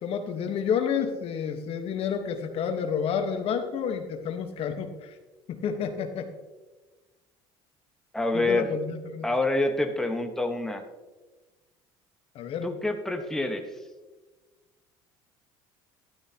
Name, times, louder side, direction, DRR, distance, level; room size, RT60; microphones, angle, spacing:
voice 1, 0.0-5.1 5.5-6.3 8.3-9.3 12.3-12.7, left 7 dB, 55° left, 6 dB, 1.3 m, -30 dB
voice 2, 8.1-8.7 9.2-10.8 12.6-13.7, left 2 dB, 5° left, 4 dB, 1.3 m, -27 dB
12.5 x 12.0 x 2.9 m, 1.2 s
supercardioid pair, 85°, 12 cm